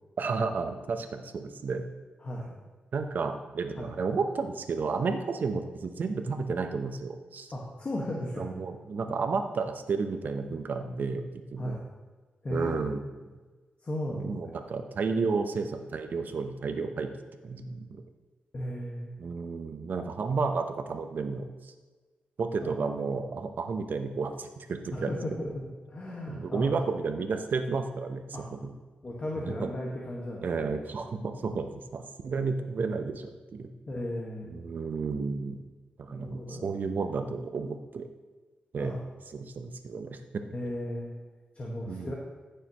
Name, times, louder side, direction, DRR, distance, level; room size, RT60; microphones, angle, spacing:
voice 1, 0.2-1.8 2.9-7.5 8.4-11.8 12.5-13.0 14.1-17.1 17.4-18.0 19.2-21.7 22.4-25.1 26.3-28.2 28.5-28.7 29.4-29.7 30.4-33.7 34.5-35.6 36.0-38.1 38.7-39.0 39.3-40.2 41.9-42.1, right 4 dB, 65° right, 7 dB, 0.9 m, -32 dB
voice 2, 2.2-2.5 3.8-3.9 7.5-8.5 11.6-11.8 12.4-12.8 13.8-14.6 18.5-19.2 22.6-22.7 24.9-26.9 28.3-28.5 29.0-30.4 33.9-34.6 36.2-36.6 38.8-39.0 40.5-41.1 41.5-42.1, left 1 dB, 40° left, -3 dB, 1.6 m, -35 dB
14.5 x 6.7 x 3.1 m, 1.3 s
cardioid pair, 80°, 3 cm